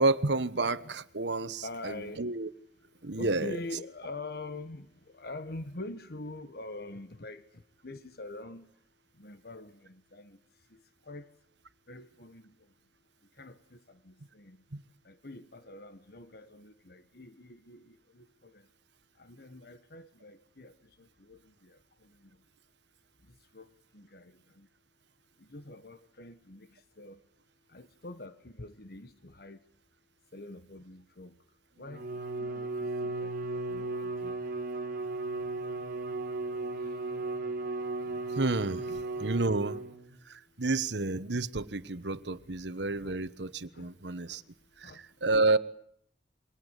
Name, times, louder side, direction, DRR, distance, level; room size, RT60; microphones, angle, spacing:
voice 1, 0.0-2.5 3.0-3.6 14.7-14.8 38.4-38.8 39.2-39.8 40.6-44.4 44.8-45.6, right 3 dB, 75° right, 1.3 m, -30 dB
voice 2, 1.6-2.2 3.2-4.9 5.1-7.4 7.8-8.7 9.2-9.7 10.1-10.4 11.1-11.3 11.9-12.4 13.4-13.5 14.1-14.6 15.1-17.8 19.2-20.7 21.3-21.4 23.5-23.6 23.9-24.2 25.5-26.7 27.0-27.2 27.7-29.6 30.3-31.3 31.8-32.0 32.4-32.7 33.0-33.3 33.7-34.3 43.0-43.2 43.7-43.8 44.8-45.0, left 2 dB, 60° left, 1.4 m, -44 dB
Bowed string instrument, 31.9-40.2, right 2 dB, 50° right, 1.9 m, -35 dB
28.0 x 24.0 x 8.3 m
head